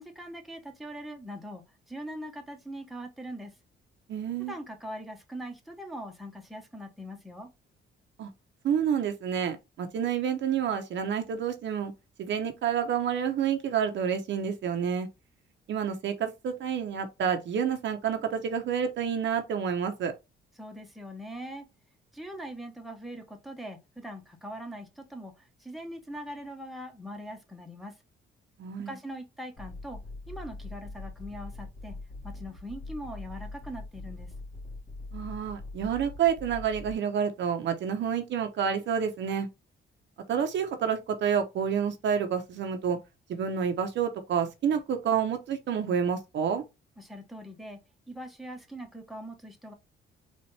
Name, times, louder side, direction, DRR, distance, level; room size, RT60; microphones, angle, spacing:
voice 1, 0.0-3.6 4.4-7.5 20.6-21.7 22.1-28.0 28.9-30.0 30.3-32.0 32.2-34.3 47.0-47.8 48.1-49.7, equal, ahead, 1.0 m, -41 dB
voice 2, 4.1-4.5 8.2-8.3 8.6-11.9 12.2-15.1 15.7-20.1 28.6-28.9 35.1-39.5 40.3-43.0 43.3-46.6, right 7 dB, 65° right, 0.8 m, -29 dB
sound 1, 29.6-36.9, left 2 dB, 50° left, 2.1 m, -42 dB
4.2 x 2.5 x 3.2 m
cardioid pair, 90°, 20 cm